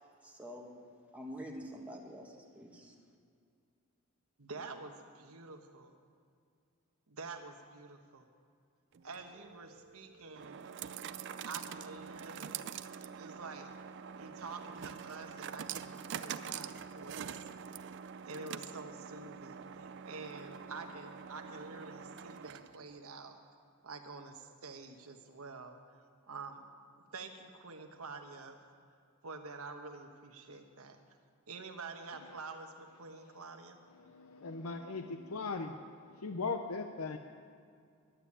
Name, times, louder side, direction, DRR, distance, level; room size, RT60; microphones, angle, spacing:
voice 1, 0.2-0.7 1.1-2.9, equal, 5° right, -1 dB, 1.6 m, -46 dB
voice 2, 4.4-5.9 7.1-8.3 9.0-10.6 11.5-12.7 13.0-13.7 14.2-17.3 18.2-23.4 23.8-25.8 26.3-26.6 27.1-28.6 29.2-31.0 31.5-33.8, right 4 dB, 85° right, 5 dB, 1.2 m, -47 dB
sound 1, 8.9-22.9, right 7 dB, 55° right, 0.4 m, -45 dB
voice 3, 33.9-37.2, left 4 dB, 85° left, 7 dB, 0.6 m, -39 dB
11.5 x 9.1 x 8.6 m, 2.3 s
head